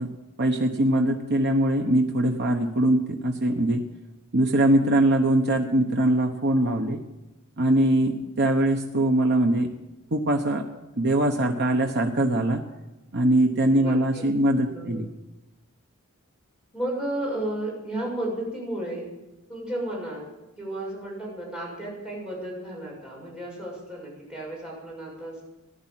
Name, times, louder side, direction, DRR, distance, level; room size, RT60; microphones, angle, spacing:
voice 1, 0.0-3.8 4.3-7.0 7.6-9.7 10.1-10.6 11.0-12.6 13.1-15.1, right 1 dB, 50° right, 3 dB, 1.0 m, -22 dB
voice 2, 13.7-14.2 14.7-15.0 16.7-19.1 19.5-20.3 20.6-25.4, right 1 dB, 5° right, -4 dB, 6.6 m, -33 dB
15.0 x 11.0 x 7.5 m, 1.0 s
head